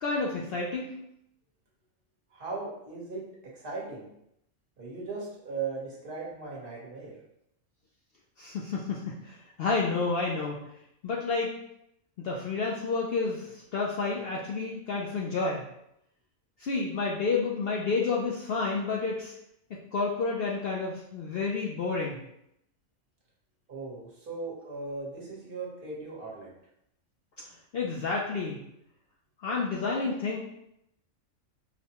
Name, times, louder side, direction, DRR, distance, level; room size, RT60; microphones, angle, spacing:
voice 1, 0.0-0.9 8.4-10.7 11.0-11.5 12.2-15.6 16.6-19.3 19.9-22.2 27.7-28.6 29.4-30.4, left 4 dB, 65° left, -3 dB, 0.6 m, -30 dB
voice 2, 2.3-3.3 3.5-4.1 4.8-7.2 23.7-26.5, right 4 dB, 45° right, -4 dB, 1.2 m, -38 dB
4.9 x 2.1 x 2.8 m, 0.79 s
omnidirectional pair, 1.4 m